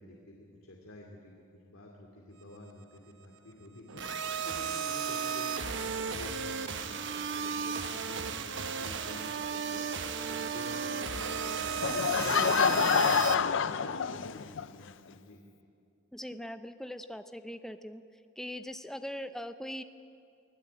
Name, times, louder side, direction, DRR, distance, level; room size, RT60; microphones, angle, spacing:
voice 1, 0.0-4.0 4.4-9.8 10.2-15.4, left 1 dB, 80° left, -1 dB, 2.5 m, -49 dB
sound 1, 3.9-13.9, right 3 dB, 80° right, 1.1 m, -52 dB
sound 2, 4.0-13.3, right 6 dB, 60° right, 1.2 m, -34 dB
Laughter / Crowd, 11.8-14.7, left 6 dB, 60° left, 0.5 m, -27 dB
voice 2, 16.1-18.0 18.4-19.8, equal, ahead, 9 dB, 0.6 m, -41 dB
24.0 x 16.0 x 8.6 m, 2.5 s
head